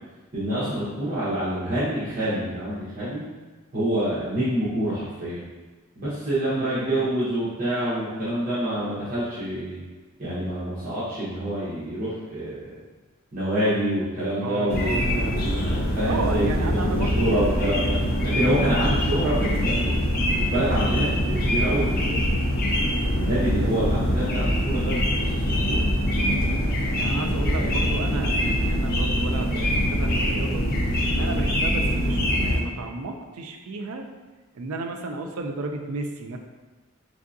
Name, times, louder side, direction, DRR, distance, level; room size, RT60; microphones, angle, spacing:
voice 1, 0.3-3.2 3.7-5.5 6.0-9.8 10.2-12.8 13.3-18.0 18.3-20.1 20.4-22.4 23.1-25.3 25.7-25.8 27.5-27.8, right 1 dB, 40° right, -11 dB, 0.8 m, -27 dB
voice 2, 6.6-7.0 14.4-15.6 16.0-18.5 26.2-30.6 31.1-34.0 34.5-36.4, right 3 dB, 80° right, 5 dB, 0.4 m, -33 dB
sound 1, 14.7-32.6, equal, 45° left, 0.5 m, -24 dB
3.6 x 3.3 x 2.6 m, 1.3 s
head